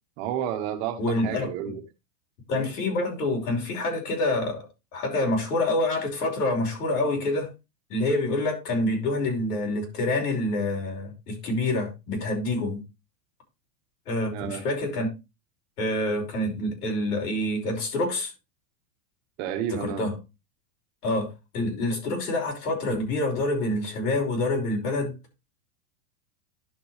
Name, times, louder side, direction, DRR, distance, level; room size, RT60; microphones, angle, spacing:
voice 1, 0.2-1.0 1.2-1.8 14.3-14.6 19.4-20.0, right 10 dB, 45° right, 1.4 m, -30 dB
voice 2, 1.0-1.5 2.5-4.6 4.9-7.5 7.9-12.8 14.1-15.1 15.8-18.3 19.7-20.2 21.0-21.3 21.5-25.1, left 2 dB, 75° left, 5.8 m, -27 dB
11.0 x 6.8 x 3.2 m
supercardioid pair, 155°, 46 cm